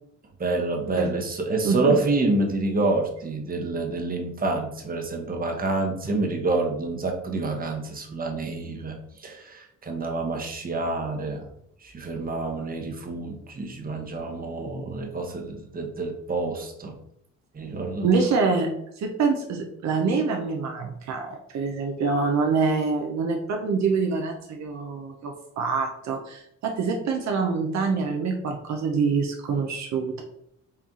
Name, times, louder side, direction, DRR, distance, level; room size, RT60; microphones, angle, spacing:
voice 1, 0.4-11.5 11.8-16.9 17.5-18.1, right 2 dB, 30° right, 2 dB, 0.9 m, -28 dB
voice 2, 1.6-2.0 18.0-30.2, right 4 dB, 65° right, 2 dB, 0.7 m, -25 dB
4.4 x 2.4 x 3.6 m, 0.72 s
cardioid pair, 90°, 30 cm